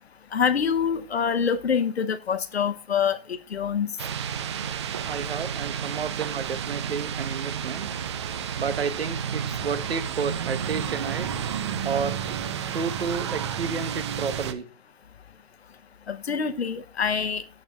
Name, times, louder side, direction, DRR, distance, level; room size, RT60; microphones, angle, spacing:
voice 1, 0.3-3.9 16.1-17.4, left 7 dB, 85° left, 0.9 m, -25 dB
sound 1, 4.0-14.5, right 8 dB, 30° right, 0.6 m, -31 dB
voice 2, 5.1-7.9 8.6-11.3 11.8-12.4 12.7-14.7, right 5 dB, 75° right, 1.1 m, -31 dB
12.5 x 7.8 x 2.3 m
hypercardioid pair, 150°, 31 cm